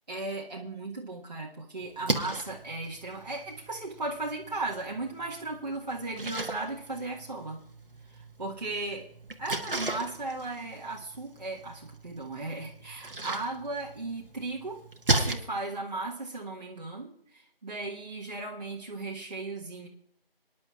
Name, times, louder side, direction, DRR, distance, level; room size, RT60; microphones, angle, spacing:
voice 1, 0.1-7.6 8.0-9.0 9.4-14.8 15.1-19.9, right 2 dB, 45° right, -3 dB, 1.6 m, -36 dB
Splash splatter, 1.8-15.3, right 2 dB, 65° right, 1.4 m, -36 dB
23.5 x 10.5 x 2.5 m, 0.72 s
figure-of-eight pair, 170°, 30 cm